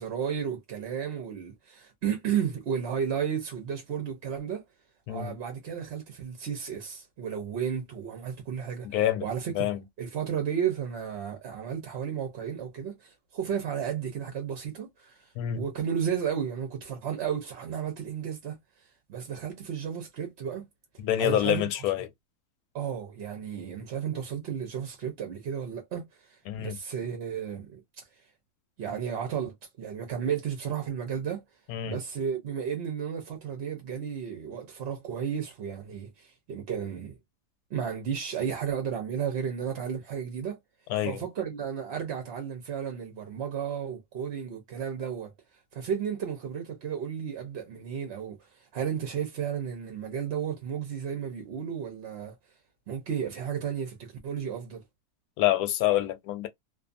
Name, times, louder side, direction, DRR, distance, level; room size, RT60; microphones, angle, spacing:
voice 1, 0.0-4.6 5.1-9.7 10.0-18.6 19.1-20.7 21.2-21.7 22.7-28.0 28.8-31.4 31.9-37.2 37.7-40.6 41.0-45.3 45.7-52.3 52.9-54.8, right 8 dB, 55° right, 0.7 m, -33 dB
voice 2, 8.9-9.3 9.5-9.8 15.4-15.6 21.0-22.1 26.5-26.8 31.7-32.0 40.9-41.2 55.4-56.5, left 12 dB, 75° left, 1.0 m, -27 dB
2.5 x 2.4 x 2.5 m
omnidirectional pair, 1.7 m